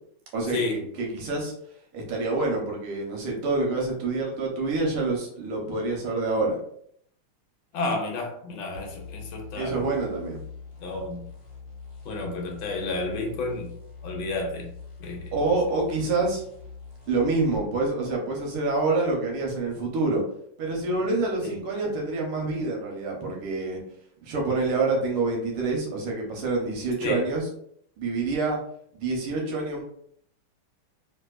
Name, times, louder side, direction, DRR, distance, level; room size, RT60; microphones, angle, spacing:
voice 1, 0.3-1.5 1.9-6.6 9.6-10.4 15.3-16.4 17.1-20.2 20.6-23.8 24.2-27.5 28.0-28.6 28.9-29.8, right 3 dB, 90° right, 0 dB, 1.8 m, -27 dB
voice 2, 7.7-9.8 10.8-11.2 12.0-13.7 14.0-14.7 15.0-15.3 21.4-21.5 27.0-27.2, left 2 dB, 75° left, 1 dB, 1.5 m, -31 dB
sound 1, 8.7-17.6, left 4 dB, 50° left, 1.2 m, -43 dB
3.3 x 3.2 x 2.3 m, 0.66 s
omnidirectional pair, 2.3 m